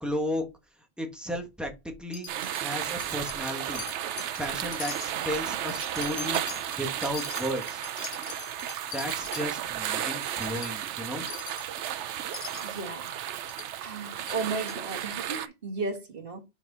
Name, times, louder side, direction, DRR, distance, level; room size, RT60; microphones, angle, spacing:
voice 1, 0.0-0.4 1.0-2.3 2.6-3.8 4.4-7.8 8.9-11.3, equal, ahead, 1.5 m, -34 dB
Wind chime, 2.1-2.6 3.0-3.5 3.7-4.4 4.7-9.4 9.9-10.0 10.2-10.7 11.3-11.7 12.3-12.8 13.5-13.7 14.3-14.4 14.7-14.8, left 6 dB, 55° left, 1.0 m, -41 dB
sound 1, 2.3-15.5, right 10 dB, 85° right, 0.9 m, -34 dB
voice 2, 12.6-13.1 13.8-16.4, right 3 dB, 50° right, 1.8 m, -34 dB
5.5 x 4.5 x 4.0 m
omnidirectional pair, 1.2 m